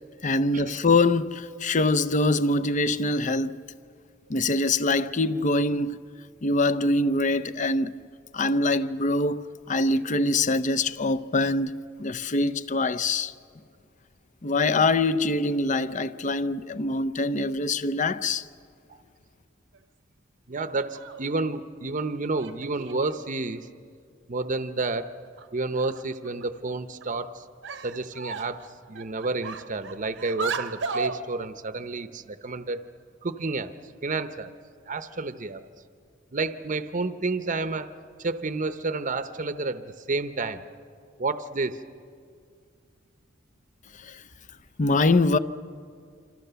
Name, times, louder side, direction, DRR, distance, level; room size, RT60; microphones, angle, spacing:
voice 1, 0.2-3.6 4.3-6.0 6.4-8.0 8.3-11.7 12.0-13.3 14.4-18.4 44.0-44.2 44.8-45.4, left 2 dB, 40° left, 0.6 m, -24 dB
voice 2, 20.5-23.7 24.3-25.1 25.5-27.4 27.8-32.8 33.2-33.7 34.0-34.5 34.8-35.6 36.3-37.9 38.2-40.6 41.2-41.8, right 3 dB, 40° right, 0.8 m, -30 dB
sound 1, 20.9-21.3 22.4-23.2 24.4-24.5 24.9-25.0 25.4-25.5 25.8-26.4 27.0-27.2 27.6-28.6 29.0-31.2, right 4 dB, 65° right, 0.9 m, -35 dB
27.5 x 26.5 x 6.9 m
head